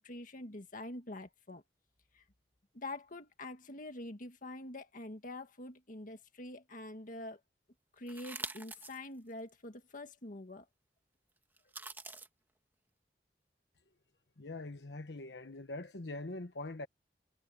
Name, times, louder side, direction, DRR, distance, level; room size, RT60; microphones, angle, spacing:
voice 1, 0.0-1.6 2.1-2.2 2.7-7.4 8.0-10.7, left 2 dB, 50° left, 1.8 m, -45 dB
sound 1, 8.1-9.0 9.5-9.6 11.6-12.3, right 2 dB, 10° right, 1.4 m, -44 dB
voice 2, 14.4-16.9, left 2 dB, 70° left, 1.1 m, -43 dB
head